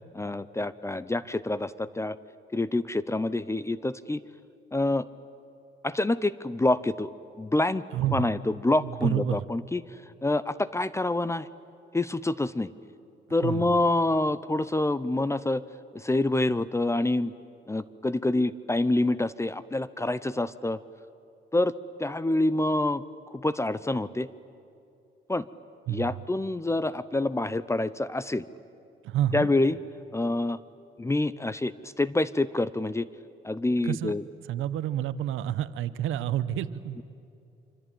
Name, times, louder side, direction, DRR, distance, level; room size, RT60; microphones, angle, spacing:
voice 1, 0.1-2.2 2.5-4.2 4.7-5.0 5.8-7.1 7.4-7.8 8.1-9.8 10.2-11.5 11.9-12.7 13.3-15.6 15.9-17.3 17.7-20.8 21.5-21.7 22.0-23.0 23.3-24.3 25.3-25.5 25.9-28.5 29.3-29.8 30.1-30.6 31.0-33.1 33.4-34.3 36.9-37.0, left 2 dB, 15° left, 16 dB, 0.7 m, -27 dB
voice 2, 7.9-8.3 8.8-9.5 13.4-13.7 25.9-26.1 29.0-29.5 33.8-34.1 34.5-37.0, right 11 dB, 85° right, 14 dB, 0.9 m, -29 dB
26.0 x 25.0 x 8.9 m, 2.6 s
cardioid pair, 90°, 20 cm